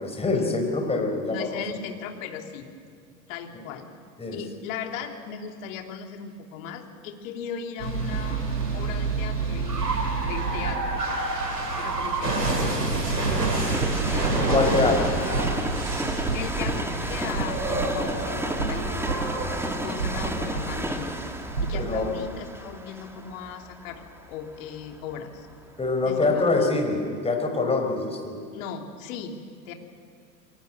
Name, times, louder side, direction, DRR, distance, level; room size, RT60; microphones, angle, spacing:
voice 1, 0.0-1.5 4.2-4.4 14.3-15.2 21.7-22.2 25.8-28.4, left 3 dB, 10° left, 3 dB, 5.0 m, -24 dB
voice 2, 1.3-2.7 3.3-3.9 4.3-9.9 10.2-11.0 11.8-14.8 15.2-15.3 16.3-19.2 19.6-21.2 21.6-25.5 26.0-26.7 28.5-29.4 29.6-29.7, left 7 dB, 50° left, 3 dB, 3.2 m, -38 dB
sound 1, 7.8-22.0, right 3 dB, 80° right, 6.6 m, -28 dB
Train, 9.9-25.9 26.5-26.6, right 1 dB, 5° right, 2.4 m, -33 dB
28.5 x 22.5 x 8.2 m, 2.2 s
figure-of-eight pair, 90°, 49 cm